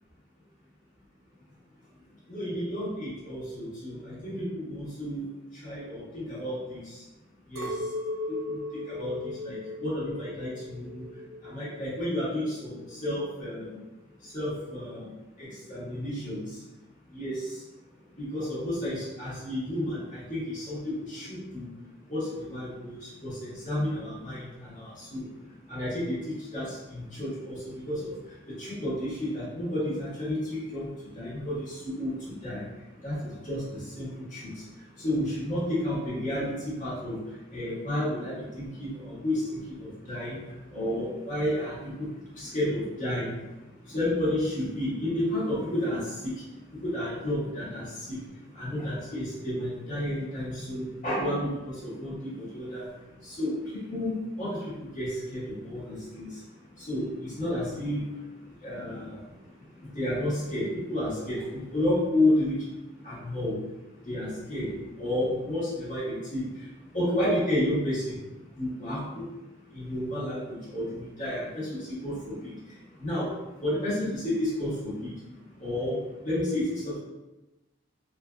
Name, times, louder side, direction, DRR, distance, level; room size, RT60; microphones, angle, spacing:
voice 1, 2.3-5.2 5.6-6.8 7.5-7.7 8.5-8.6 8.9-9.2 9.4-10.5 10.7-11.0 11.4-13.8 14.3-15.1 15.4-16.4 17.1-17.4 18.2-21.7 22.1-22.9 23.2-25.3 25.7-26.2 26.5-27.6 27.9-28.1 28.6-30.9 31.1-32.1 32.4-32.6 33.0-33.7 33.9-34.5 35.0-37.1 37.5-40.4 40.7-42.1 42.4-43.3 43.9-46.0 46.8-48.1 48.5-52.9 53.3-53.5 53.9-54.1 54.4-54.6 54.9-55.8 56.1-56.3 56.9-58.1 58.6-59.1 59.9-62.5 63.0-63.6 64.1-64.7 65.0-66.4 66.9-68.2 68.6-69.2 69.7-72.5 73.0-73.3 73.6-75.1 75.6-76.0 76.2-77.0, left 1 dB, 35° left, -9 dB, 1.4 m, -31 dB
Chink clink, 7.6-11.9 12.2-13.0, left 2 dB, 90° right, 0.7 m, -37 dB
4.5 x 2.4 x 2.3 m, 1.0 s
head